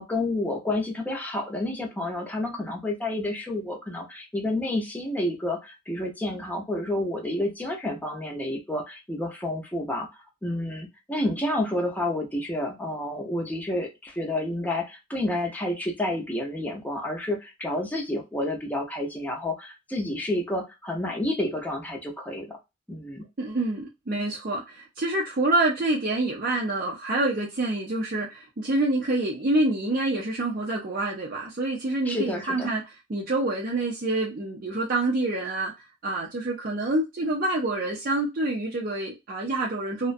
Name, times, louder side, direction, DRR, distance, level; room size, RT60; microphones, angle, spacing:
voice 1, 0.0-22.6 22.9-23.2 32.1-32.7, left 1 dB, 10° left, 0 dB, 0.6 m, -30 dB
voice 2, 23.4-40.1, right 2 dB, 45° right, -2 dB, 0.5 m, -27 dB
2.4 x 2.1 x 2.5 m, 0.23 s
head